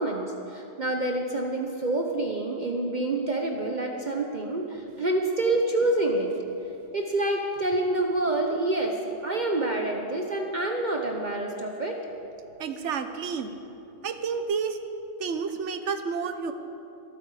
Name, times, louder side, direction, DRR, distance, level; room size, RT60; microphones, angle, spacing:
voice 1, 0.0-6.3 6.9-12.0, right 2 dB, 40° right, 2 dB, 1.0 m, -27 dB
voice 2, 12.6-13.5 14.0-14.8 15.2-16.5, right 5 dB, 70° right, 9 dB, 1.2 m, -30 dB
24.0 x 9.0 x 4.9 m, 2.8 s
omnidirectional pair, 1.3 m